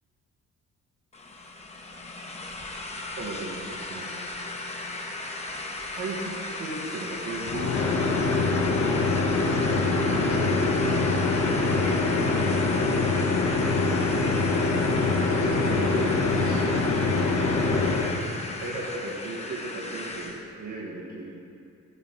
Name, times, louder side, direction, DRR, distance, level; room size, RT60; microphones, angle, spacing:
sound 1, 1.1-20.4, left 2 dB, 20° left, 0.9 m, -36 dB
voice 1, 3.2-4.1 5.9-7.7 9.9-11.2 14.8-16.9 18.5-21.4, right 2 dB, 80° right, -3 dB, 1.5 m, -36 dB
sound 2, 7.5-18.1, left 3 dB, 55° left, 1.1 m, -24 dB
9.9 x 4.3 x 6.9 m, 2.5 s
cardioid pair, 90°, 30 cm